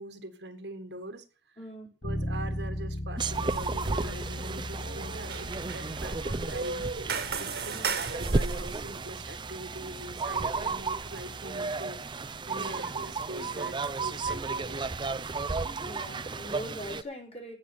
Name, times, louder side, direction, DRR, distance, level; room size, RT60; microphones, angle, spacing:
voice 1, 0.0-1.6 2.0-6.9 7.4-12.0 12.5-15.0, right 1 dB, 80° right, 9 dB, 1.6 m, -43 dB
voice 2, 1.6-1.9 7.7-7.9 12.5-12.9 15.8-17.5, equal, 35° left, -1 dB, 5.8 m, -42 dB
Bass guitar, 2.0-11.8, left 1 dB, 60° left, 3.4 m, -39 dB
sound 1, 3.2-17.0, right 3 dB, 25° right, 0.5 m, -33 dB
sound 2, 3.5-3.9 4.2-8.8, right 5 dB, 65° right, 1.5 m, -36 dB
17.0 x 6.8 x 5.7 m, 0.35 s
head